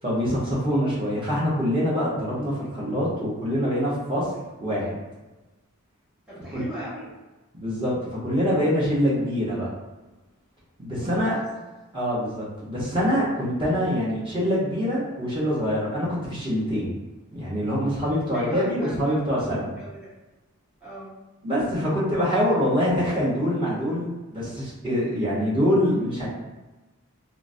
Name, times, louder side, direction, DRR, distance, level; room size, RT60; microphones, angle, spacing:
voice 1, 0.0-4.3 4.6-5.0 6.5-6.7 7.5-9.7 10.8-11.4 11.9-16.9 17.3-19.7 21.4-26.3, equal, 20° right, -8 dB, 0.8 m, -25 dB
voice 2, 6.3-7.1 10.9-11.5 18.3-19.2 19.8-20.1 20.8-21.1, equal, 5° right, -11 dB, 1.3 m, -39 dB
3.8 x 2.0 x 2.5 m, 1.1 s
head